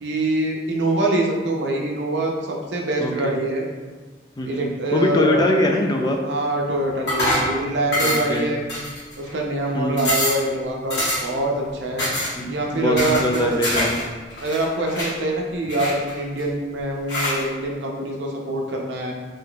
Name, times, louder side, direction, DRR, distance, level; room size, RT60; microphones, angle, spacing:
voice 1, 0.0-3.7 4.4-5.5 6.2-8.6 9.2-12.1 12.5-13.5 14.4-19.1, right 1 dB, 80° right, 0 dB, 0.5 m, -24 dB
voice 2, 3.0-3.3 4.4-6.2 8.0-8.5 9.7-10.1 12.4-13.9, left 1 dB, 20° left, 1 dB, 0.3 m, -23 dB
sound 1, 7.1-7.5 7.9-8.4 8.7-9.3 9.6-9.7 10.0-10.4 10.9-11.4 12.0-12.3 13.0-14.0 14.3-15.1 15.7-16.4 17.1-17.4, left 1 dB, 70° left, 1.2 m, -24 dB
3.8 x 2.6 x 2.2 m, 1.4 s
head